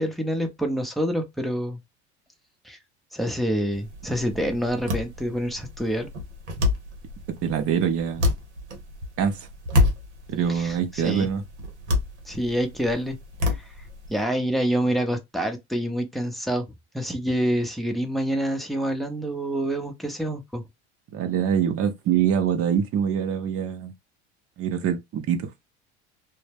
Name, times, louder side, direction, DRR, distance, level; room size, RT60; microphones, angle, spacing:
voice 1, 0.0-1.8 2.6-2.8 3.1-6.1 10.5-11.3 12.3-13.2 14.1-16.7 16.9-20.6, equal, ahead, 0.7 m, -27 dB
sound 1, 3.7-14.2, left 2 dB, 90° right, 0.8 m, -29 dB
voice 2, 7.4-8.3 9.2-9.5 10.3-11.4 21.1-23.9 24.6-25.5, right 8 dB, 45° right, 0.8 m, -24 dB
2.1 x 2.1 x 3.3 m
hypercardioid pair, 85°, 33 cm